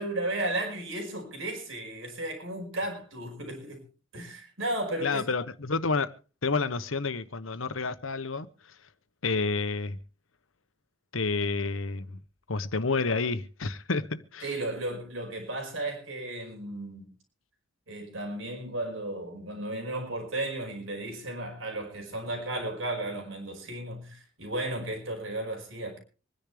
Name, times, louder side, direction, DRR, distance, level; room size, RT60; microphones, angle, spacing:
voice 1, 0.0-3.8 4.1-5.2 14.4-17.1 17.9-26.0, right 1 dB, 80° right, 5.3 m, -34 dB
voice 2, 5.0-6.1 6.4-8.5 9.2-10.0 11.1-12.2 12.5-14.5, left 4 dB, 85° left, 1.1 m, -29 dB
26.0 x 10.5 x 3.3 m
head